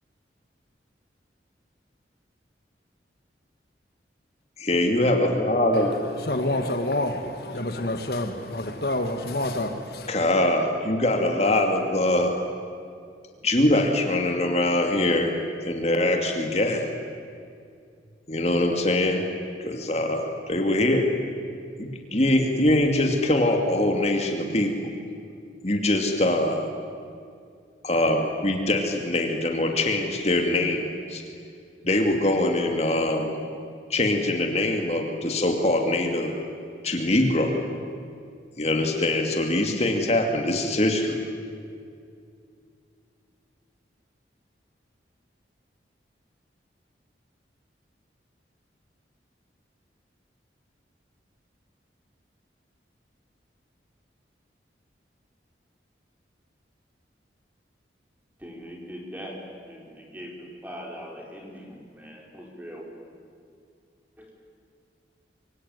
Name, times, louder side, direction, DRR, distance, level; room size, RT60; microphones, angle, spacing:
voice 1, 4.6-6.0 10.1-12.3 13.4-15.4 15.6-16.9 18.3-19.2 19.6-21.1 21.8-24.7 25.6-26.7 27.8-30.8 31.1-31.2 31.8-33.3 33.9-36.3 36.8-37.6 38.6-41.2, left 1 dB, 35° left, 3 dB, 2.5 m, -23 dB
voice 2, 5.7-10.1, left 1 dB, 55° left, 6 dB, 1.7 m, -28 dB
voice 3, 58.4-62.9 64.2-64.3, equal, 10° right, 0 dB, 4.5 m, -41 dB
25.5 x 24.5 x 9.5 m, 2.3 s
head